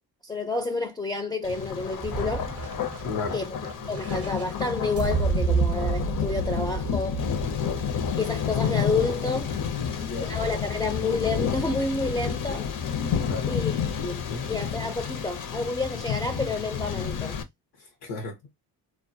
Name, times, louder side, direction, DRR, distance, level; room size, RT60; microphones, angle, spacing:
voice 1, 0.2-2.5 3.3-3.5 3.9-7.2 8.2-9.5 10.0-12.7 13.5-17.4, left 3 dB, 10° left, 0.4 m, -29 dB
Thunder, 1.4-17.4, left 7 dB, 55° left, 0.6 m, -30 dB
sound 1, 2.0-10.0, right 5 dB, 40° right, 0.6 m, -31 dB
voice 2, 3.0-3.4 9.8-10.4 13.2-13.6 14.3-14.5 18.0-18.5, left 4 dB, 85° left, 0.8 m, -34 dB
2.2 x 2.1 x 2.6 m
cardioid pair, 65°, 40 cm